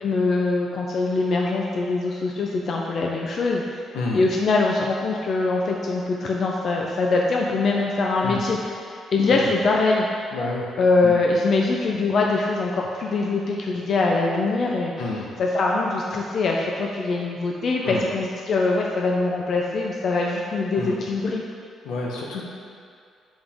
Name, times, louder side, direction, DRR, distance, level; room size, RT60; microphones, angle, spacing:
voice 1, 0.0-3.8 4.1-10.1 10.8-14.9 15.4-21.4, left 3 dB, 55° left, -1 dB, 0.6 m, -23 dB
voice 2, 10.3-10.7 11.0-11.1 15.0-15.3 17.8-18.0 20.8-21.0 21.8-22.4, left 3 dB, 90° left, -3 dB, 1.1 m, -29 dB
6.9 x 5.2 x 3.6 m, 2.4 s
cardioid pair, 90°, 0 cm